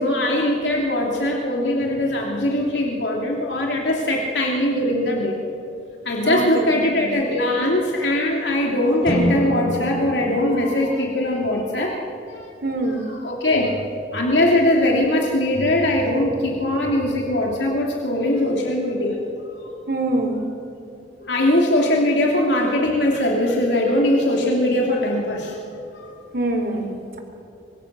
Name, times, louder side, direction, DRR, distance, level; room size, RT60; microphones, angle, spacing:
voice 1, 0.0-5.4 6.0-12.0 12.3-12.5 13.2-13.8 14.1-19.2 21.2-25.6 25.9-26.1, left 1 dB, 85° left, -1 dB, 2.7 m, -21 dB
voice 2, 6.2-7.1 12.6-13.0 19.9-20.4 26.3-27.2, right 2 dB, 65° right, 3 dB, 4.2 m, -24 dB
sound 1, 9.0-11.4, equal, 30° left, 5.2 m, -27 dB
25.5 x 23.5 x 6.7 m, 2.6 s
head